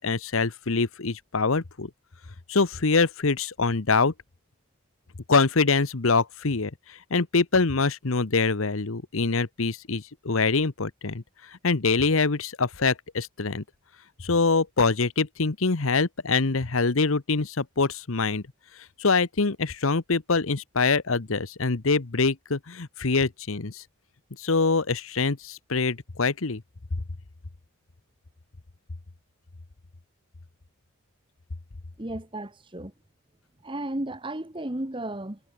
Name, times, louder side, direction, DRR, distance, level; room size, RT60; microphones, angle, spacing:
voice 1, 0.0-1.9 2.5-4.1 5.3-6.7 7.1-11.2 11.6-13.6 14.2-18.4 19.0-23.8 24.4-26.6, left 4 dB, 70° left, 1.1 m, -24 dB
voice 2, 32.0-32.9 33.6-35.4, right 1 dB, 25° right, 1.3 m, -34 dB
head